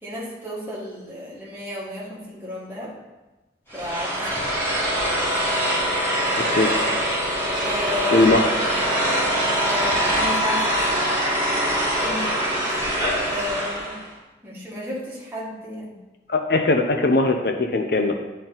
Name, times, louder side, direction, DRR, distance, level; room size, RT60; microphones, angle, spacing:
voice 1, 0.0-2.9 3.7-4.4 7.6-8.4 9.6-11.1 12.0-12.3 12.6-12.9 13.2-14.0 14.4-15.9, left 1 dB, 10° right, -6 dB, 1.8 m, -33 dB
sound 1, 3.7-14.0, equal, 15° left, 2.6 m, -23 dB
voice 2, 8.1-8.4 16.3-18.2, left 2 dB, 60° left, 5 dB, 0.6 m, -20 dB
10.0 x 4.4 x 4.0 m, 1.1 s
head